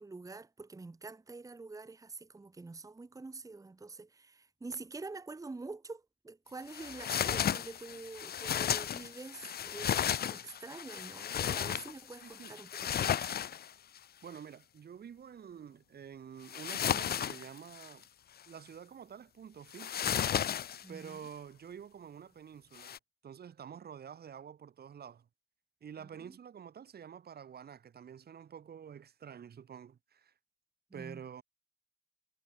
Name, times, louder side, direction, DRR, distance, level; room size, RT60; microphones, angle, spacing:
voice 1, 0.0-13.4 20.8-21.2 26.0-26.4 30.9-31.2, right 3 dB, 20° right, 0.8 m, -46 dB
sound 1, 6.7-14.0 16.5-18.0 19.7-21.1 22.8-23.0, left 9 dB, 80° left, 0.5 m, -34 dB
voice 2, 12.2-12.6 14.2-18.1 18.5-19.9 20.9-22.9 23.2-25.3 25.8-30.3 30.9-31.4, right 8 dB, 90° right, 2.0 m, -48 dB
wide cardioid pair, 95°, 16 cm